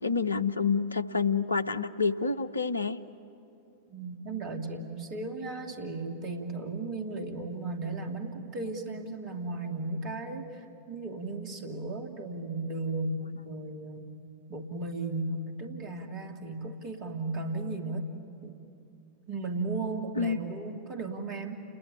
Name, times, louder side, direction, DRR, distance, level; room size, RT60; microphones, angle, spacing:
voice 1, 0.0-3.0 20.2-20.4, left 5 dB, 80° left, 13 dB, 0.7 m, -28 dB
voice 2, 3.9-14.1 14.5-18.1 18.4-18.6 19.3-21.6, right 2 dB, 35° right, 5 dB, 2.6 m, -35 dB
29.5 x 20.5 x 9.7 m, 2.7 s
figure-of-eight pair, 90°, 0 cm